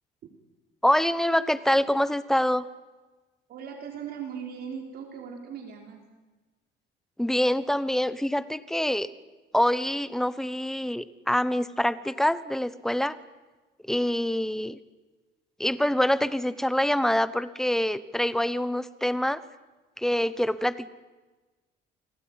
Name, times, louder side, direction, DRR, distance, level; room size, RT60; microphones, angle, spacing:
voice 1, 0.8-2.7 7.2-9.1 9.5-13.2 13.9-14.8 15.6-19.4 20.0-20.9, left 1 dB, ahead, 14 dB, 1.0 m, -25 dB
voice 2, 3.5-6.0, right 7 dB, 55° right, 3 dB, 3.9 m, -38 dB
29.5 x 20.0 x 9.6 m, 1.2 s
cardioid pair, 165°, 19 cm